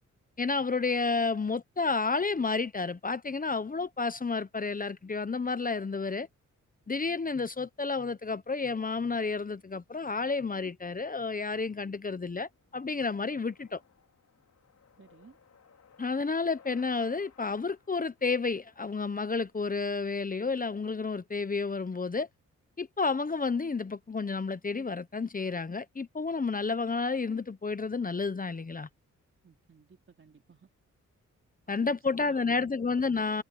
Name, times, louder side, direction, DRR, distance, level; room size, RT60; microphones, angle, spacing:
voice 1, 0.4-6.3 6.9-13.8 16.0-22.3 22.8-28.9 31.7-33.4, left 4 dB, 30° left, 1.0 m, -31 dB
sound 1, 9.1-20.0, left 6 dB, 65° left, 5.3 m, -62 dB
voice 2, 15.0-15.4 29.4-30.7 31.7-32.8, right 5 dB, 45° right, 3.4 m, -57 dB
cardioid pair, 70°, 30 cm